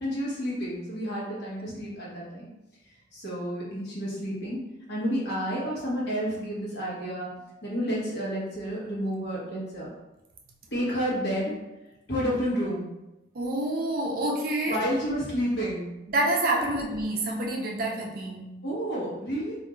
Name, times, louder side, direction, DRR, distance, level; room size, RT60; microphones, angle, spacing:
voice 1, 0.0-2.5 3.1-4.6 4.9-7.3 7.6-9.9 10.7-11.5 12.1-12.9 14.7-15.8 18.6-19.6, equal, 65° left, -6 dB, 1.0 m, -30 dB
voice 2, 13.3-14.9 16.1-18.6, right 1 dB, 50° right, 0 dB, 0.4 m, -28 dB
2.5 x 2.3 x 3.0 m, 0.95 s
head